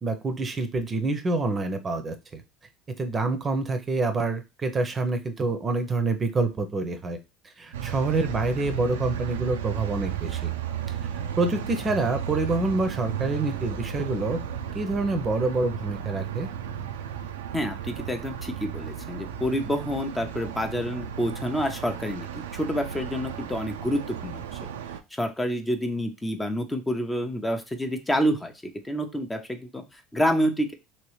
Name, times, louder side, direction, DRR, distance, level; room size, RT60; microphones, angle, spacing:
voice 1, 0.0-2.4 3.0-7.2 7.6-10.5 11.4-14.4 14.7-16.5, right 3 dB, 30° right, 7 dB, 0.6 m, -27 dB
sound 1, 7.7-25.0, right 8 dB, 90° right, 0.3 m, -34 dB
voice 2, 17.5-24.7 25.1-30.7, equal, 15° left, 5 dB, 0.6 m, -28 dB
3.0 x 2.9 x 3.1 m, 0.27 s
hypercardioid pair, 80°, 0 cm